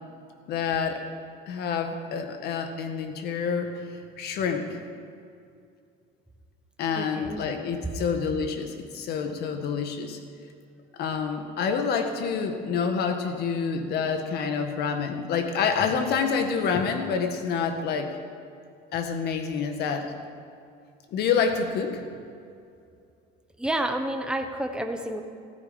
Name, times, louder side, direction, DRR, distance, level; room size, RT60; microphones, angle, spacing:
voice 1, 0.5-1.0 1.5-4.8 6.8-10.2 11.0-18.1 18.9-20.1 21.1-22.0, left 6 dB, 55° left, 6 dB, 1.7 m, -27 dB
voice 2, 7.0-7.5 23.6-25.2, right 1 dB, 5° right, 5 dB, 1.1 m, -29 dB
15.5 x 14.5 x 5.4 m, 2.4 s
cardioid pair, 135°, 20 cm